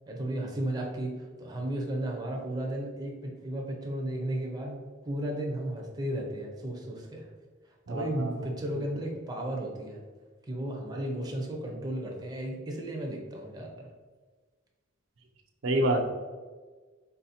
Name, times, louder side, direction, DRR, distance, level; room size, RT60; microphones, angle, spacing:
voice 1, 0.1-7.3 7.7-10.0 10.5-13.9, right 1 dB, 20° right, 0 dB, 0.7 m, -34 dB
voice 2, 7.9-8.3 15.6-16.1, right 1 dB, 75° right, 3 dB, 0.5 m, -27 dB
4.0 x 2.7 x 4.2 m, 1.4 s
head